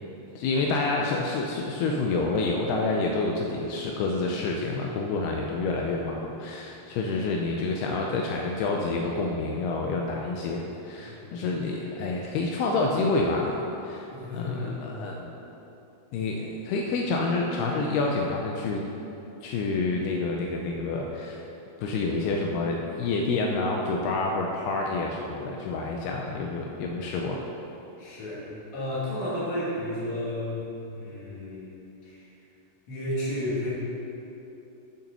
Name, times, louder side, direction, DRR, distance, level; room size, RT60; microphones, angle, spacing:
voice 1, 0.4-13.6 13.8-14.1 14.3-15.3 16.1-18.9 19.4-21.4 21.8-27.4, left 3 dB, 85° left, 0 dB, 2.6 m, -28 dB
voice 2, 11.1-11.6 14.1-14.8 26.0-26.5 28.0-31.8 32.0-32.3 32.9-33.7, left 1 dB, 45° left, -8 dB, 3.6 m, -33 dB
8.8 x 7.1 x 6.7 m, 3.0 s
omnidirectional pair, 4.7 m